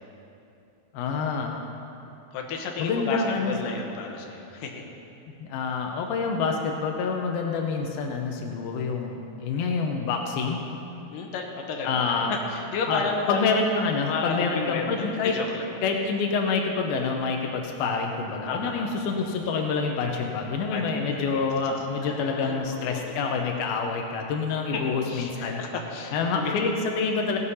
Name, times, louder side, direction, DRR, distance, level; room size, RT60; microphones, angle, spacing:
voice 1, 0.9-1.6 2.8-3.5 5.4-10.6 11.8-12.3 12.9-13.0 13.3-15.3 15.8-25.6 26.1-27.4, left 4 dB, 90° left, 2 dB, 2.7 m, -27 dB
voice 2, 2.3-4.8 11.1-13.4 14.1-15.6 18.5-19.0 20.0-20.2 20.7-21.5 22.0-23.4 24.7-24.8 25.1-26.6, left 4 dB, 70° left, 1 dB, 2.8 m, -33 dB
16.5 x 8.2 x 5.5 m, 2.8 s
omnidirectional pair, 4.1 m